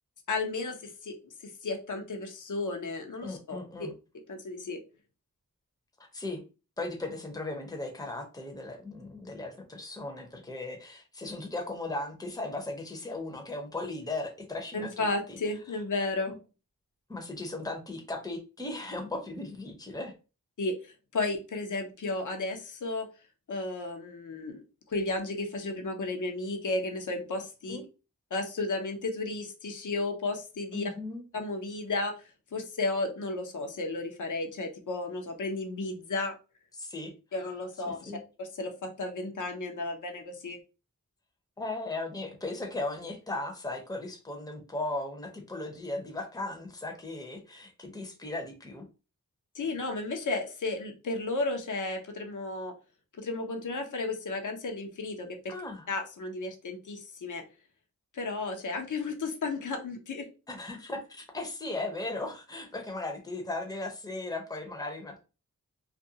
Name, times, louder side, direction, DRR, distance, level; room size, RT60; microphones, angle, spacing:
voice 1, 0.3-3.6 4.3-4.8 14.7-16.3 20.6-23.1 23.5-24.6 24.9-27.8 28.3-30.9 31.3-32.1 32.5-36.4 37.3-40.6 49.5-52.7 53.2-55.5 55.9-57.4 58.1-60.3, left 3 dB, 65° left, 4 dB, 0.7 m, -33 dB
voice 2, 3.2-3.9 6.0-6.4 6.8-15.4 17.1-20.1 27.7-27.8 30.7-31.2 36.8-37.1 37.9-38.2 41.6-48.8 55.5-55.9 60.5-65.2, left 2 dB, 10° left, 3 dB, 0.7 m, -37 dB
2.4 x 2.2 x 2.7 m, 0.32 s
wide cardioid pair, 45°, 32 cm